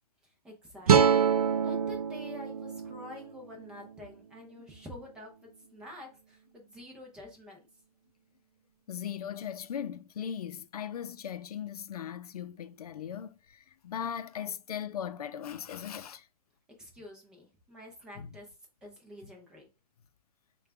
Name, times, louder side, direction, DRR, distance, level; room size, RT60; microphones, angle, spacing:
voice 1, 0.4-1.3 1.6-7.6 16.8-18.5 18.8-19.7, left 1 dB, 5° right, 0.4 m, -48 dB
sound 1, 0.9-4.1, right 7 dB, 70° right, 0.6 m, -26 dB
voice 2, 8.9-13.3 13.8-16.2 18.2-18.3, left 9 dB, 75° left, 0.5 m, -38 dB
4.8 x 2.2 x 3.3 m
hypercardioid pair, 160°, 20 cm